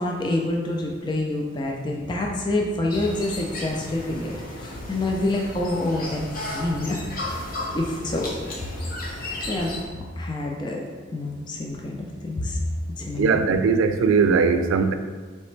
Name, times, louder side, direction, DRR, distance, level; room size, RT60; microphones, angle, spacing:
voice 1, 0.0-7.0 7.7-8.3 9.5-9.7 10.2-10.8 11.1-12.6 13.0-13.4, left 2 dB, 20° left, 0.3 m, -27 dB
sound 1, 2.9-9.8, left 1 dB, 45° left, 0.8 m, -34 dB
voice 2, 13.2-14.9, right 5 dB, 70° right, 0.3 m, -19 dB
4.1 x 3.2 x 3.1 m
head